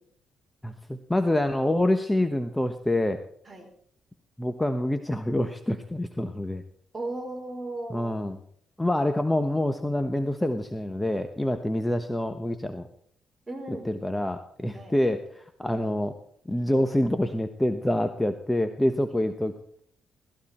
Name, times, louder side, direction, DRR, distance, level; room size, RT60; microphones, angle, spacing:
voice 1, 0.6-3.2 4.4-6.6 7.9-8.4 8.8-12.9 13.8-16.1 16.5-19.5, left 1 dB, 10° left, 7 dB, 1.1 m, -26 dB
voice 2, 6.9-8.1 13.5-13.9 14.7-14.9, right 2 dB, 25° right, 3 dB, 4.5 m, -36 dB
18.0 x 14.5 x 4.4 m, 0.65 s
cardioid pair, 90°, 0 cm